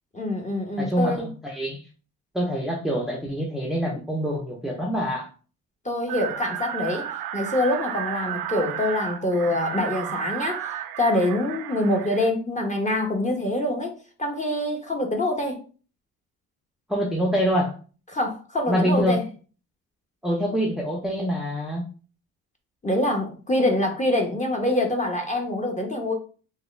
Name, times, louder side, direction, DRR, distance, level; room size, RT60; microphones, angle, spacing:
voice 1, 0.1-1.3 5.8-7.1 7.3-13.9 14.2-15.6 18.1-19.2 22.8-26.1, left 1 dB, 20° left, 2 dB, 1.1 m, -25 dB
voice 2, 0.8-1.9 2.3-5.3 16.9-17.8 18.7-19.2 20.2-21.8, equal, ahead, -2 dB, 0.7 m, -25 dB
sound 1, 6.1-12.3, right 10 dB, 80° right, 0.5 m, -33 dB
3.5 x 2.3 x 3.3 m, 0.37 s
cardioid pair, 75°, 35 cm